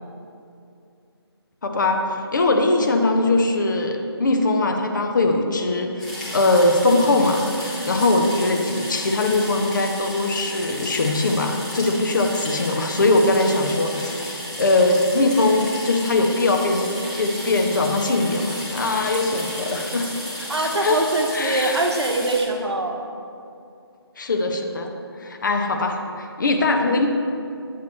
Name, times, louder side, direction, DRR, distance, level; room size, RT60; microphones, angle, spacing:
voice 1, 1.6-16.9 17.2-20.1 20.4-20.5 20.8-21.0 21.3-21.8 24.2-24.9 25.2-27.1, left 2 dB, 50° left, 4 dB, 0.7 m, -21 dB
sound 1, 6.0-22.4, equal, 5° left, 0.6 m, -33 dB
voice 2, 20.5-23.0, right 2 dB, 80° right, 3 dB, 0.8 m, -23 dB
7.5 x 2.8 x 6.0 m, 2.5 s
figure-of-eight pair, 155°, 14 cm